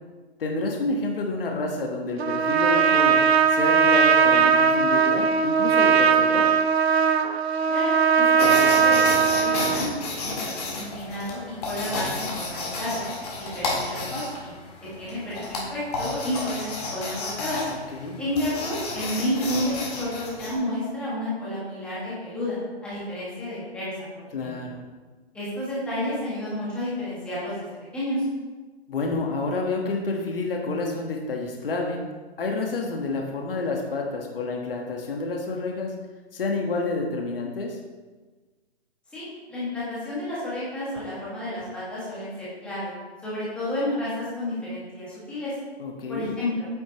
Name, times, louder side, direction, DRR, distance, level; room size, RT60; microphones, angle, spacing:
voice 1, 0.4-3.2 3.5-6.5 17.7-18.2 24.3-24.8 28.9-32.0 32.4-35.9 36.3-37.8 45.8-46.3, left 3 dB, 60° left, 1 dB, 1.4 m, -29 dB
Trumpet, 2.2-9.8, right 6 dB, 70° right, 0.8 m, -19 dB
voice 2, 7.7-13.0 13.4-14.5 15.0-17.6 18.2-24.7 25.3-27.7 27.9-28.2 39.1-42.9 43.2-45.5 46.1-46.7, left 1 dB, 5° left, -9 dB, 1.7 m, -31 dB
sound 1, 8.4-20.5, left 3 dB, 40° left, 2.0 m, -32 dB
8.5 x 7.7 x 2.9 m, 1.3 s
hypercardioid pair, 165°, 32 cm